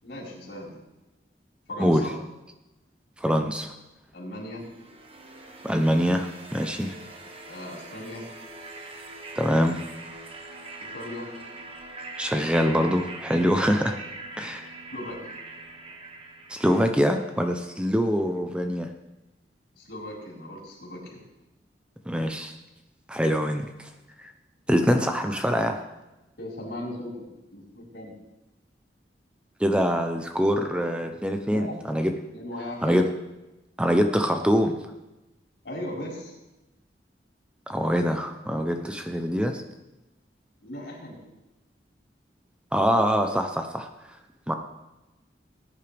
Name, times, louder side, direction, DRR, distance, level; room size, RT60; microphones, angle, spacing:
voice 1, 0.0-0.8 1.7-2.1 4.1-4.6 7.4-8.3 10.8-11.3 14.9-15.3 17.7-17.9 19.7-21.2 26.4-27.1 27.5-28.1 31.4-31.8 32.3-33.0 35.6-36.3 40.6-41.2, left 1 dB, 80° left, -4 dB, 4.7 m, -37 dB
voice 2, 3.2-3.7 5.6-6.9 9.4-9.8 12.2-14.0 14.4-14.7 16.5-18.9 22.1-22.5 23.1-23.7 24.2-24.3 24.7-25.8 29.6-32.1 32.8-33.0 33.8-34.8 37.7-39.6 42.7-43.9 44.5-44.6, equal, 5° right, 5 dB, 0.7 m, -24 dB
sound 1, 4.6-17.5, right 2 dB, 30° right, 1.4 m, -43 dB
19.0 x 10.0 x 3.5 m, 1.0 s
head